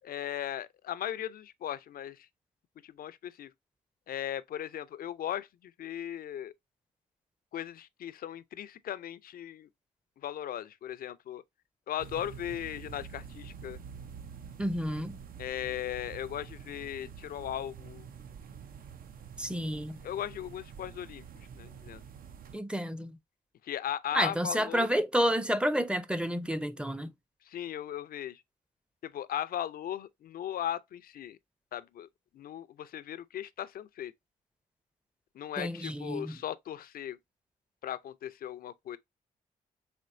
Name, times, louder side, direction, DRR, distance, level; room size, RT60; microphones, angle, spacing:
voice 1, 0.0-2.3 2.8-3.5 4.1-6.5 7.5-9.7 10.2-11.4 11.9-13.8 15.4-18.1 20.0-22.0 23.6-24.9 27.4-28.4 29.0-31.4 31.7-32.1 32.3-34.1 35.3-37.2 37.8-39.0, left 11 dB, 70° left, 0.4 m, -37 dB
sound 1, 12.0-22.6, right 7 dB, 65° right, 0.5 m, -47 dB
voice 2, 14.6-15.2 19.4-20.0 22.5-23.2 24.1-27.1 35.6-36.4, equal, 5° right, 0.5 m, -30 dB
4.3 x 3.0 x 2.5 m
cardioid pair, 60°, 16 cm